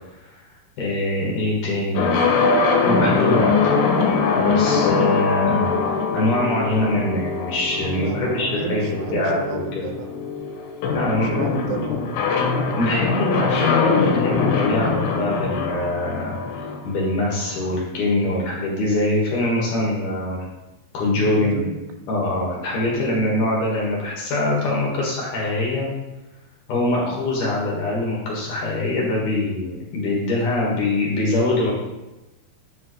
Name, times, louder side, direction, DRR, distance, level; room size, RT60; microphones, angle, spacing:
voice 1, 0.8-2.2 2.8-3.8 4.3-5.7 6.1-9.9 10.9-11.3 12.8-16.4 16.8-20.4 20.9-21.6 22.1-25.9 26.7-31.7, left 2 dB, 60° left, -4 dB, 2.7 m, -23 dB
sound 1, 1.9-17.7, left 5 dB, 75° left, 2.8 m, -23 dB
voice 2, 7.8-10.4 10.9-12.2 21.2-21.8 22.9-23.3, right 7 dB, 85° right, 5 dB, 2.8 m, -32 dB
9.1 x 7.7 x 3.1 m, 1.0 s
omnidirectional pair, 4.8 m